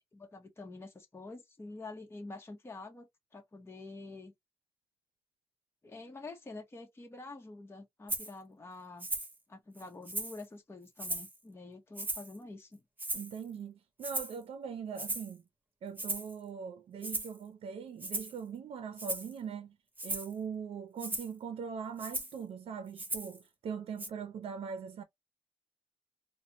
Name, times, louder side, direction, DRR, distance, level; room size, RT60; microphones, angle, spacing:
voice 1, 0.1-4.3 5.8-9.1 9.5-12.8, left 3 dB, 25° left, 0.9 m, -47 dB
Rattle (instrument), 8.1-8.3 9.0-9.4 9.8-10.4 11.0-11.4 12.0-12.4 13.0-13.4 14.0-14.4 15.0-15.3 16.0-16.3 17.0-17.4 18.0-18.4 19.0-19.3 20.0-20.3 21.0-21.3 22.0-22.4 23.0-23.4 24.0-24.1, right 2 dB, 20° right, 1.5 m, -37 dB
voice 2, 13.1-15.4 15.8-19.8 20.0-25.0, right 6 dB, 85° right, 0.5 m, -41 dB
4.1 x 2.1 x 2.9 m
cardioid pair, 90°, 10 cm